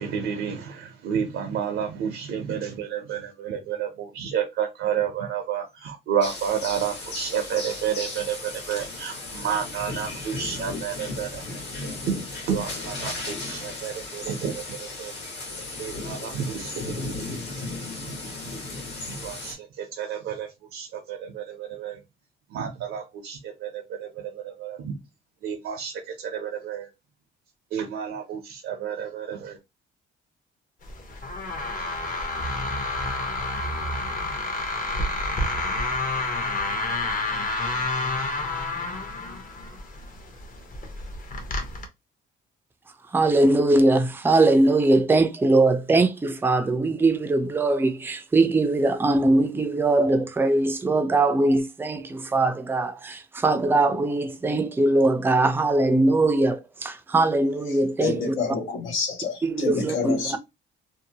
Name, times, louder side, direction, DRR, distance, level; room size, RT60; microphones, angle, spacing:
voice 1, 0.0-11.4 11.8-12.2 12.5-15.1 15.8-17.4 18.1-18.2 18.4-18.6 19.0-22.0 22.5-24.9 25.4-26.9 27.7-29.6, right 8 dB, 85° right, 0.6 m, -31 dB
sound 1, 6.2-19.5, left 3 dB, 60° left, 1.2 m, -35 dB
sound 2, 30.8-41.9, left 2 dB, 45° left, 0.8 m, -29 dB
voice 2, 43.1-58.4 59.4-60.4, right 2 dB, 10° right, 0.3 m, -21 dB
voice 3, 58.0-60.4, left 5 dB, 80° left, 0.6 m, -28 dB
2.6 x 2.0 x 2.8 m
cardioid pair, 90°, 20 cm